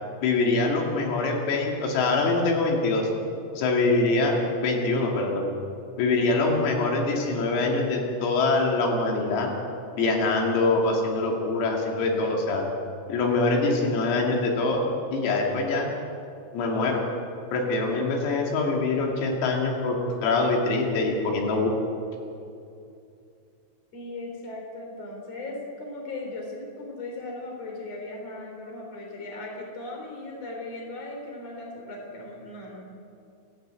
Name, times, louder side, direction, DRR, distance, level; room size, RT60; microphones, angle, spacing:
voice 1, 0.2-3.1 3.5-5.5 6.0-9.5 10.0-12.7 13.1-14.9 15.1-15.9 16.5-17.0 17.5-21.7, left 3 dB, 85° left, 0 dB, 5.2 m, -24 dB
voice 2, 23.9-32.8, left 2 dB, 35° left, 0 dB, 4.3 m, -38 dB
28.5 x 11.0 x 8.3 m, 2.6 s
omnidirectional pair, 5.9 m